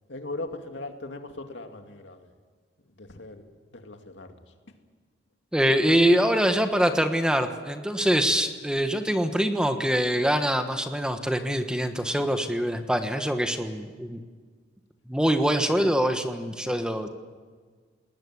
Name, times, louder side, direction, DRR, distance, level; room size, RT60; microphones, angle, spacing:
voice 1, 0.1-2.3 3.0-3.4 3.7-4.4 15.7-15.9 16.6-16.8, left 2 dB, 80° left, 5 dB, 2.3 m, -39 dB
voice 2, 5.5-14.2 15.1-17.1, equal, 5° right, 7 dB, 1.3 m, -24 dB
20.0 x 19.5 x 9.6 m, 1.6 s
head